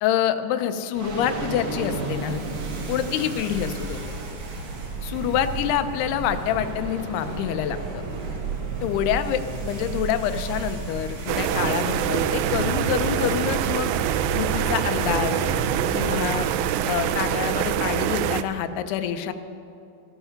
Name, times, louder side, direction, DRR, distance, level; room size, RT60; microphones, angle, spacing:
voice 1, 0.0-2.4 2.9-4.0 5.0-8.0 8.8-13.9 14.3-15.4 15.9-16.5 16.8-19.3, left 10 dB, 85° left, 9 dB, 2.7 m, -26 dB
sound 1, 0.9-18.3, right 3 dB, 55° right, 1.8 m, -32 dB
sound 2, 11.3-18.4, right 11 dB, 85° right, 2.1 m, -25 dB
sound 3, 11.4-17.3, equal, 40° left, 1.2 m, -40 dB
13.5 x 11.5 x 5.7 m, 2.6 s
omnidirectional pair, 4.5 m